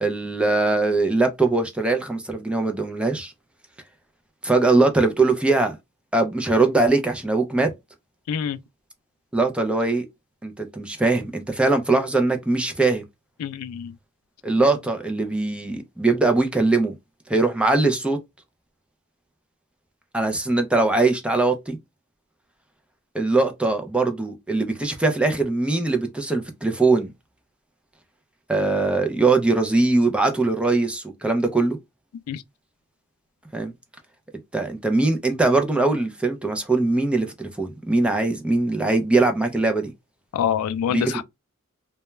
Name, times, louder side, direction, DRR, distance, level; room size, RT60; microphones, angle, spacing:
voice 1, 0.0-3.3 4.4-5.8 6.1-7.7 9.3-10.1 10.4-13.0 14.4-16.9 17.3-18.2 20.1-21.8 23.1-27.1 28.5-31.8 33.5-33.7 34.5-39.9 40.9-41.2, right 3 dB, 5° right, 0.4 m, -21 dB
voice 2, 8.3-8.6 13.4-13.9 32.3-32.4 40.3-41.2, left 8 dB, 85° left, 0.3 m, -26 dB
2.2 x 2.1 x 3.0 m
head